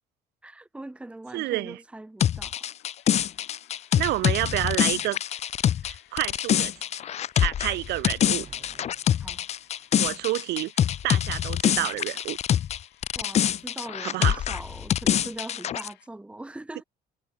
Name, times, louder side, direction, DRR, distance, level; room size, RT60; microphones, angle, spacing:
voice 1, 0.4-2.6 9.2-9.5 13.2-16.8, right 2 dB, 5° right, 1.0 m, -41 dB
voice 2, 1.3-1.8 4.0-5.2 5.8-6.7 7.4-8.5 10.0-10.7 11.0-12.4 14.0-14.4, right 18 dB, 80° right, 0.9 m, -29 dB
sound 1, 2.2-12.8 13.0-15.9, left 10 dB, 40° left, 0.5 m, -25 dB
sound 2, 2.3-16.1, left 16 dB, 80° left, 5.1 m, -59 dB
sound 3, 8.4-10.5, right 6 dB, 40° right, 5.3 m, -54 dB
cardioid pair, 110°, 17 cm